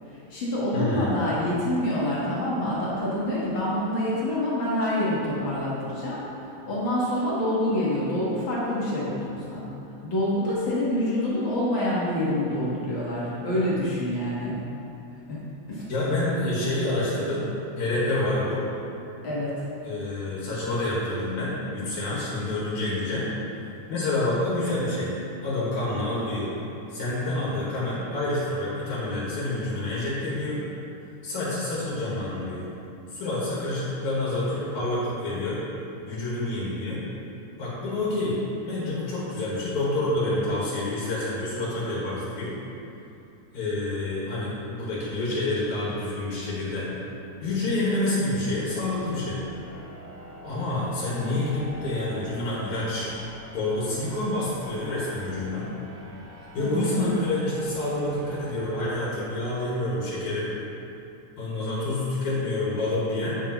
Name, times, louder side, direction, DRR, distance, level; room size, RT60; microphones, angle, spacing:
voice 1, 0.1-9.7 10.0-14.6 15.3-15.4 15.7-15.8 19.2-19.5 56.3-57.1, left 1 dB, 50° left, -8 dB, 1.6 m, -27 dB
voice 2, 0.7-1.2 15.9-17.5 17.8-18.7 19.8-23.3 23.9-26.5 26.9-30.7 31.2-32.7 33.1-35.6 36.1-37.0 37.6-42.5 43.5-46.9 47.4-49.4 50.4-53.1 53.5-55.7 56.5-60.5 61.4-63.4, left 2 dB, 70° left, -7 dB, 2.8 m, -28 dB
sound 1, 46.9-59.8, equal, 55° right, 2.3 m, -46 dB
8.5 x 7.8 x 3.0 m, 2.8 s
omnidirectional pair, 3.7 m